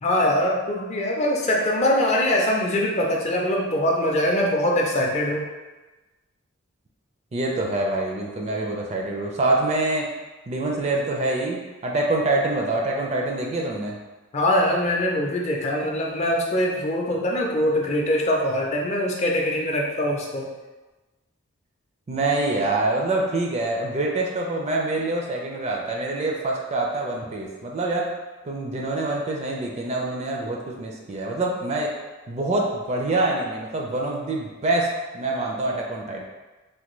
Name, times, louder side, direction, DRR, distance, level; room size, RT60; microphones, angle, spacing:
voice 1, 0.0-5.4 14.3-20.5, left 1 dB, 35° left, -1 dB, 0.4 m, -23 dB
voice 2, 7.3-10.1 10.5-14.0 22.1-28.1 28.4-31.9 32.3-36.2, right 2 dB, 30° right, -1 dB, 0.4 m, -25 dB
3.3 x 2.2 x 3.0 m, 1.2 s
head